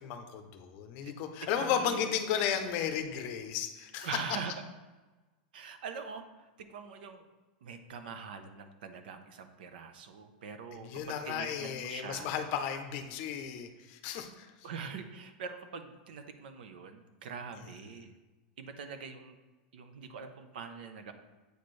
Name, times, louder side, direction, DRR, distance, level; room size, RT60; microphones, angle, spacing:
voice 1, 0.0-4.1 10.8-14.5, left 8 dB, 40° left, 6 dB, 0.6 m, -34 dB
voice 2, 1.5-2.0 4.0-4.5 5.5-7.3 7.6-12.3 14.6-18.1 18.6-19.3 19.7-21.1, right 5 dB, 75° right, 8 dB, 0.7 m, -43 dB
8.1 x 4.3 x 3.2 m, 1.2 s
supercardioid pair, 165°, 5 cm